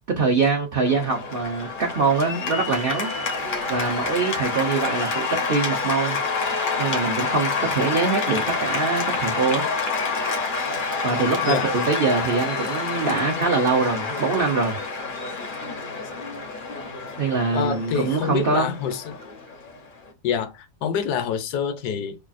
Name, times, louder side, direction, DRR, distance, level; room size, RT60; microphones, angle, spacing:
voice 1, 0.1-3.1 3.4-6.2 6.8-9.6 11.0-14.7 17.2-18.8, right 4 dB, 55° right, 0.6 m, -23 dB
Cheering / Applause, 0.8-20.1, left 4 dB, 45° left, 0.6 m, -28 dB
voice 2, 17.5-19.2 20.2-22.2, left 7 dB, 70° left, 1.2 m, -26 dB
4.8 x 2.4 x 2.4 m
omnidirectional pair, 1.8 m